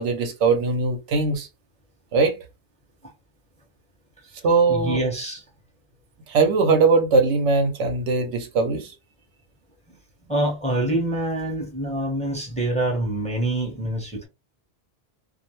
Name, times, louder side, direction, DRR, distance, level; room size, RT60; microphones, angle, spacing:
voice 1, 0.0-1.5 2.1-2.4 4.4-5.0 6.3-8.9, right 4 dB, 85° right, 1.0 m, -20 dB
voice 2, 4.7-5.4 10.3-14.3, right 1 dB, 5° left, 0.8 m, -25 dB
2.4 x 2.0 x 2.9 m
omnidirectional pair, 1.2 m